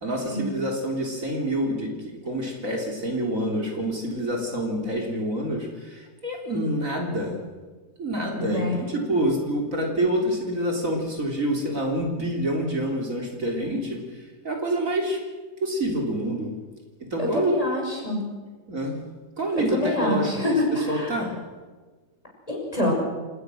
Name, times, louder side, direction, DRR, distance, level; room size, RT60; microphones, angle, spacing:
voice 1, 0.0-7.4 8.0-15.2 15.6-16.5 17.0-17.6 18.7-19.0 19.4-21.4, right 1 dB, 55° right, 1 dB, 3.7 m, -27 dB
voice 2, 8.4-8.7 17.2-18.2 19.5-21.2 22.5-22.9, left 1 dB, 20° left, -1 dB, 6.5 m, -26 dB
28.5 x 18.5 x 6.4 m, 1.3 s
omnidirectional pair, 1.7 m